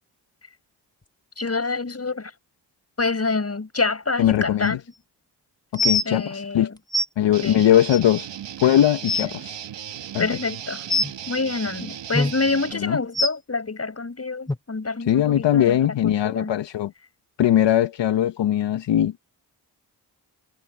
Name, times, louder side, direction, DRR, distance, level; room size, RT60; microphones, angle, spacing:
voice 1, 1.4-2.3 3.0-4.8 6.0-6.8 7.4-7.7 9.2-9.3 10.2-10.8 11.3-16.5, left 3 dB, 35° left, 5.9 m, -27 dB
voice 2, 4.2-4.8 5.7-6.7 7.2-8.3 8.6-9.6 10.1-10.3 12.8-13.0 15.1-16.9 17.4-19.1, left 11 dB, 75° left, 1.2 m, -20 dB
sound 1, 4.6-4.7 5.7-6.1 6.9-7.0 7.9-8.0 8.6-8.7 8.9-9.3 10.9-11.1 12.1-12.3 13.1-13.3 14.5-14.6 15.3-15.4 16.1-16.2, left 2 dB, 10° left, 1.8 m, -22 dB
Guitar, 7.3-12.7, right 10 dB, 75° right, 2.1 m, -36 dB
supercardioid pair, 50°, 43 cm